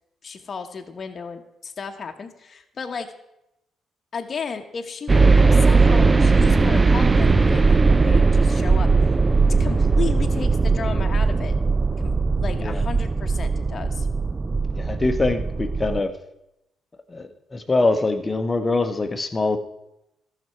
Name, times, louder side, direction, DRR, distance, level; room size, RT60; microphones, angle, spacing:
voice 1, 0.2-3.1 4.1-9.2 9.6-11.5 12.0-12.1 12.4-14.1, left 5 dB, 45° left, 5 dB, 1.0 m, -34 dB
sound 1, 5.1-16.0, right 4 dB, 25° right, 0.3 m, -18 dB
voice 2, 14.8-16.1 17.1-19.6, left 3 dB, 25° left, 8 dB, 1.0 m, -23 dB
13.5 x 6.0 x 4.5 m, 0.86 s
cardioid pair, 90°, 0 cm